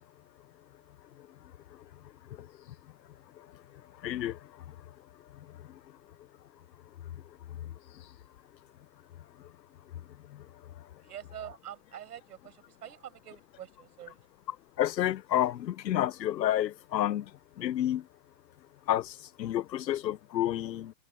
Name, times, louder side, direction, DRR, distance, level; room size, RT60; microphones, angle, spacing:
voice 1, 4.0-4.4 14.8-17.2 17.6-18.0 18.9-20.9, left 12 dB, 80° left, 1.0 m, -29 dB
voice 2, 11.0-14.3, right 10 dB, 65° right, 6.5 m, -46 dB
hypercardioid pair, 170°, 50 cm